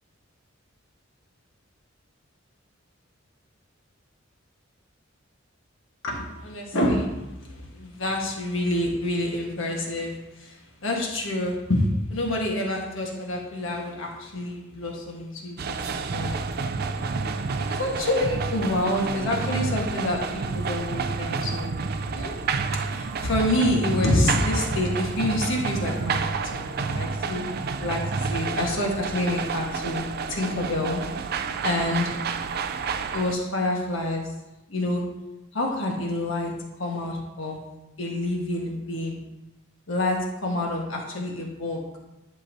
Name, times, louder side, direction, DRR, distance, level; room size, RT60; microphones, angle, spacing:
voice 1, 6.0-10.1 10.4-15.6 15.8-16.4 17.7-21.7 22.1-22.3 22.9-27.4 27.8-28.0 28.3-31.0 31.6-32.1 33.1-34.3 34.7-35.1 35.5-36.5 36.8-37.6 38.0-39.2 39.9-41.8, left 1 dB, 75° left, 0 dB, 1.4 m, -27 dB
sound 1, 15.6-33.3, right 4 dB, 50° right, 0.4 m, -29 dB
10.5 x 5.5 x 2.7 m, 1.0 s
head